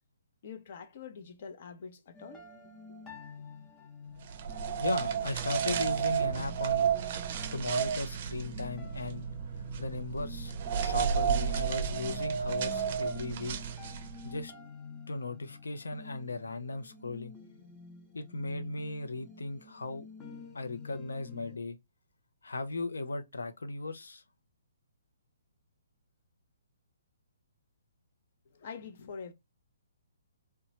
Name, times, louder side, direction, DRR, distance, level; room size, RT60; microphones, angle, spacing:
voice 1, 0.4-2.5 2.9-3.0 28.5-29.3, left 6 dB, 50° left, 0.7 m, -45 dB
sound 1, 2.1-21.6, left 4 dB, 15° left, 0.7 m, -50 dB
sound 2, 4.3-14.3, right 7 dB, 45° right, 0.4 m, -32 dB
voice 2, 4.8-6.9 7.5-9.3 9.8-13.6 14.2-14.5 15.1-17.3 18.1-20.1 20.5-21.8 22.4-24.2, left 3 dB, 90° left, 0.6 m, -37 dB
2.9 x 2.2 x 2.8 m
hypercardioid pair, 145°, 0 cm